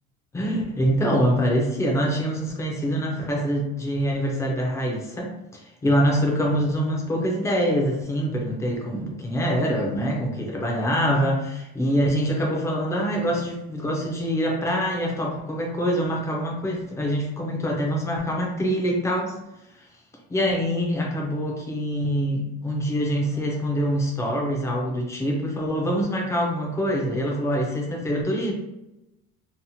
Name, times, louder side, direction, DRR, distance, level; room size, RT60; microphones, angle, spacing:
voice 1, 0.3-19.4 20.3-28.5, equal, 10° left, -1 dB, 0.3 m, -25 dB
2.7 x 2.0 x 2.8 m, 0.92 s
cardioid pair, 175°, 30 cm